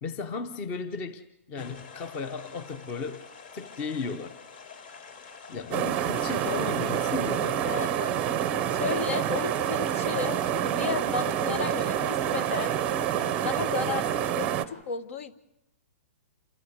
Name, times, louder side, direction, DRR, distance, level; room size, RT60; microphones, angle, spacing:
voice 1, 0.0-3.2 3.5-4.4 5.5-7.8, left 4 dB, 20° left, 0.7 m, -35 dB
sound 1, 1.6-14.3, left 5 dB, 40° left, 3.1 m, -48 dB
sound 2, 5.7-14.6, right 10 dB, 20° right, 0.6 m, -27 dB
voice 2, 7.6-8.2 8.7-12.8 13.4-15.3, left 6 dB, 65° left, 1.3 m, -34 dB
28.5 x 13.0 x 8.0 m
hypercardioid pair, 170°, 8 cm